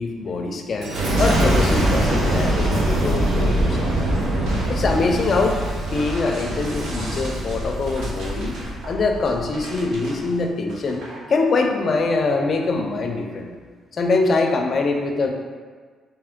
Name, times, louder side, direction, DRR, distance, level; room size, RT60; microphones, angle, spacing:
voice 1, 0.0-3.9 4.7-5.6 5.9-8.6 8.9-11.0 11.3-13.5 13.9-15.3, left 3 dB, 50° left, 2 dB, 0.5 m, -23 dB
Boom, 0.8-10.1 10.7-11.1, right 1 dB, 80° right, 0.9 m, -23 dB
3.4 x 2.9 x 3.6 m, 1.6 s
cardioid pair, 90°, 0 cm